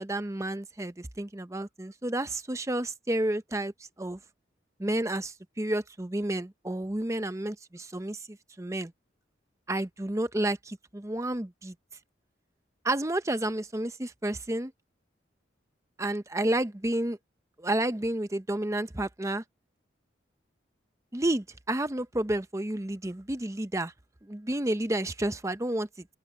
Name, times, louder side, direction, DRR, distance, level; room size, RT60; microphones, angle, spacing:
voice 1, 0.0-3.7 4.0-4.2 4.8-8.9 9.7-11.7 12.8-14.7 16.0-17.2 17.6-19.4 21.1-23.9 24.2-26.1, right 1 dB, 15° right, 0.7 m, -30 dB
open air
head